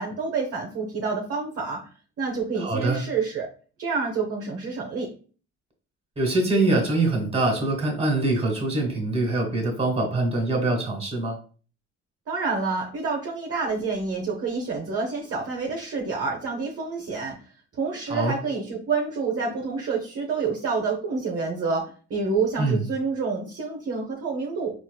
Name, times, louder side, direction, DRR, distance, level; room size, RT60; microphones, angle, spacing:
voice 1, 0.0-1.8 2.2-3.5 3.8-5.1 12.3-17.3 17.7-24.7, right 4 dB, 50° right, -1 dB, 0.8 m, -28 dB
voice 2, 2.6-3.0 6.2-11.4 18.1-18.4 22.6-22.8, right 2 dB, 20° right, 2 dB, 1.4 m, -24 dB
4.0 x 2.5 x 2.2 m, 0.39 s
cardioid pair, 90°, 30 cm